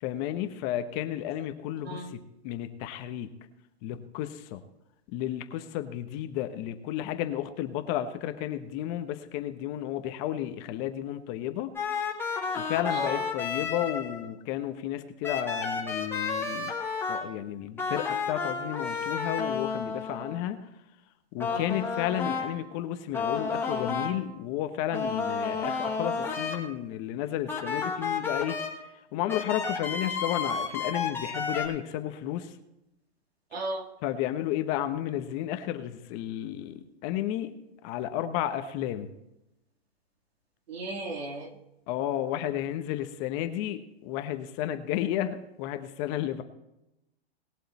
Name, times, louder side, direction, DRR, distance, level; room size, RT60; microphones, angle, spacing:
voice 1, 0.0-3.3 3.8-4.6 5.1-11.7 12.5-16.7 17.1-20.7 21.3-28.6 29.1-32.6 33.5-33.6 34.0-37.5 37.8-39.1 41.9-46.4, left 12 dB, 35° left, 9 dB, 1.1 m, -32 dB
sound 1, 11.8-14.3 15.2-17.3 17.8-20.4 21.4-22.6 23.1-24.1 24.9-26.6 27.5-28.7 29.3-31.7, left 5 dB, 5° left, 2.5 m, -31 dB
voice 2, 12.9-13.2 21.5-21.8 33.5-33.9 40.7-41.5, right 2 dB, 75° right, 4 dB, 3.2 m, -35 dB
20.0 x 7.6 x 4.2 m, 0.88 s
hypercardioid pair, 150°, 32 cm